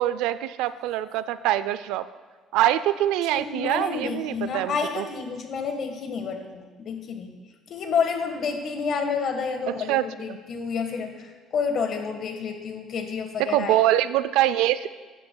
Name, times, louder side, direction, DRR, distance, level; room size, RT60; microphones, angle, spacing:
voice 1, 0.0-2.1 2.5-5.0 9.7-10.4 13.4-14.9, right 13 dB, 80° right, 14 dB, 0.4 m, -24 dB
voice 2, 3.3-7.4 7.7-13.8, left 5 dB, 55° left, 5 dB, 1.4 m, -29 dB
14.0 x 9.7 x 2.3 m, 1.4 s
supercardioid pair, 80°, 0 cm